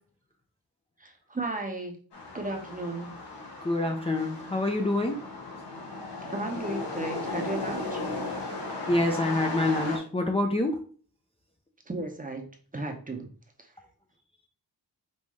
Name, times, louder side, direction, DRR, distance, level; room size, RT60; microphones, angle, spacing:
voice 1, 1.0-2.0 2.3-3.1 6.3-8.0 11.9-12.5 12.7-13.3, right 2 dB, 20° right, 3 dB, 0.8 m, -34 dB
sound 1, 2.1-10.0, left 2 dB, 90° left, 1.4 m, -36 dB
voice 2, 3.6-5.2 8.9-10.8, left 2 dB, 15° left, 0 dB, 0.6 m, -26 dB
5.4 x 2.6 x 3.1 m, 0.42 s
wide cardioid pair, 105°, 39 cm